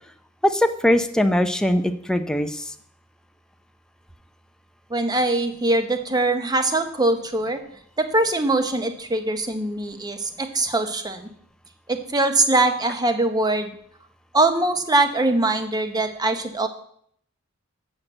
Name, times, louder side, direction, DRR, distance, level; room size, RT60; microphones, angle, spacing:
voice 1, 0.4-2.7, left 1 dB, 5° left, 7 dB, 0.5 m, -21 dB
voice 2, 4.9-7.6 8.0-11.3 11.9-13.7 14.3-16.7, right 2 dB, 20° right, 7 dB, 0.9 m, -22 dB
7.6 x 5.8 x 7.8 m, 0.66 s
head